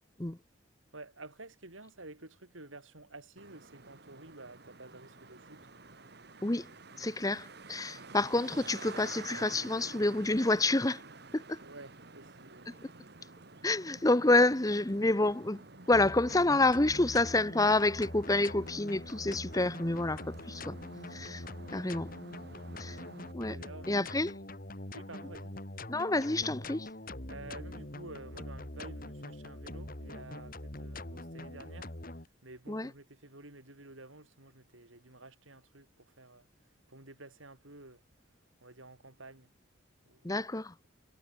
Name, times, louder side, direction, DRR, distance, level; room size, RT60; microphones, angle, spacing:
voice 1, 0.9-5.7 11.3-12.8 22.4-22.6 22.9-23.1 23.4-24.1 24.9-25.6 27.3-36.5 36.9-38.0 38.6-39.5 40.1-40.3, right 2 dB, 85° right, 5.4 m, -51 dB
Traffic noise roadway noise, 3.4-23.3, right 3 dB, 55° right, 2.3 m, -50 dB
voice 2, 7.0-11.0 11.3-11.6 13.6-15.6 15.9-20.8 21.1-21.4 21.7-22.1 22.8-23.0 23.3-23.6 23.9-24.3 25.9-26.9 32.7-32.9 40.2-40.7, left 2 dB, 20° left, 0.9 m, -28 dB
sound 1, 15.9-32.3, left 1 dB, 45° left, 3.1 m, -44 dB
head